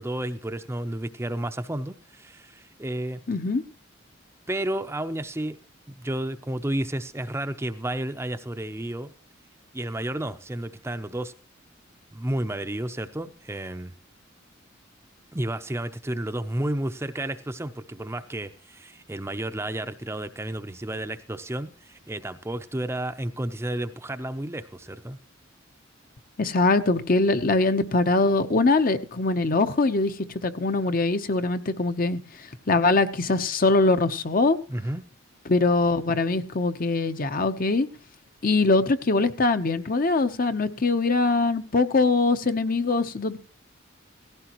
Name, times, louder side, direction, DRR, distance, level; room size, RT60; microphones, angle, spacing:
voice 1, 0.0-3.2 4.5-5.6 5.9-9.1 9.7-11.3 12.1-13.9 15.3-25.2 34.7-35.0, right 1 dB, 15° right, 0.6 m, -31 dB
voice 2, 3.3-3.6 26.4-34.6 35.5-37.9 38.4-43.4, left 3 dB, 45° left, 0.8 m, -22 dB
17.5 x 15.5 x 3.0 m
head